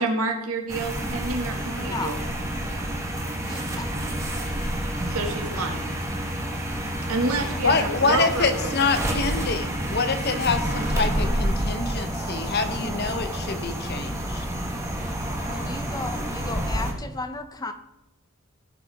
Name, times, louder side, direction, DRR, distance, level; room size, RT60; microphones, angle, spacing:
voice 1, 0.0-2.2 5.1-6.0 7.1-8.8, right 3 dB, 80° right, 2 dB, 2.0 m, -28 dB
sound 1, 0.7-16.9, equal, 15° right, 1.4 m, -29 dB
voice 2, 1.7-2.2 3.4-3.9 7.4-7.6 15.5-17.7, left 2 dB, 15° left, 8 dB, 0.7 m, -35 dB
voice 3, 7.6-14.4, left 4 dB, 45° left, 8 dB, 1.0 m, -26 dB
17.0 x 6.5 x 3.5 m, 0.93 s
head